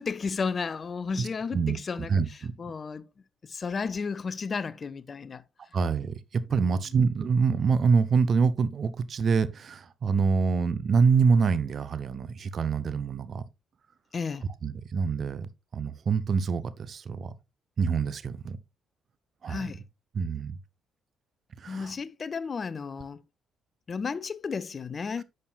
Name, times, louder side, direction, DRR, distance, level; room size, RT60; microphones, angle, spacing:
voice 1, 0.0-3.1 3.4-5.4 6.5-6.8 14.1-14.5 19.5-19.8 21.7-23.2 23.9-25.2, left 5 dB, 40° left, 0.5 m, -33 dB
voice 2, 1.1-1.8 2.1-2.5 5.7-13.4 14.6-17.3 17.8-18.6 19.4-19.7 20.1-20.6 21.6-21.9, right 5 dB, 50° right, 0.8 m, -26 dB
10.5 x 6.6 x 2.4 m
figure-of-eight pair, 45°, 0 cm